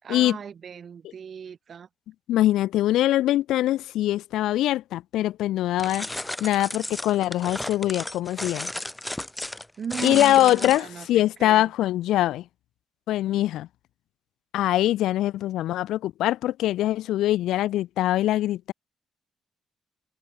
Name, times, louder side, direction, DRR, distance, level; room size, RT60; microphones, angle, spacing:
voice 1, 0.0-1.9 9.8-11.7, right 7 dB, 50° right, 5.0 m, -37 dB
voice 2, 2.3-6.1 6.4-8.7 10.0-12.4 13.1-13.7 14.5-18.7, left 14 dB, 85° left, 0.5 m, -23 dB
sound 1, 5.8-11.1, left 1 dB, 10° left, 2.0 m, -34 dB
cardioid pair, 90°, 0 cm